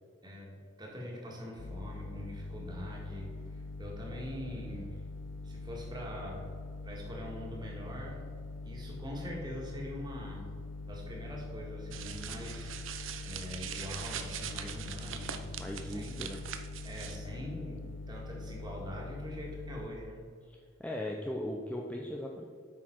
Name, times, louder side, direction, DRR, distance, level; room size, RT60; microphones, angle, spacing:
voice 1, 0.2-5.0 5.4-6.5 6.8-8.3 8.6-10.5 10.9-12.8 13.2-15.4 15.8-16.3 16.8-20.2, equal, 20° right, -2 dB, 1.8 m, -43 dB
sound 1, 1.6-19.9, left 3 dB, 60° left, 0.6 m, -43 dB
sound 2, 11.9-17.2, right 9 dB, 75° right, 0.7 m, -42 dB
voice 2, 15.6-16.4 20.5-22.4, left 1 dB, 5° left, 0 dB, 0.5 m, -38 dB
8.6 x 6.1 x 4.6 m, 2.2 s
head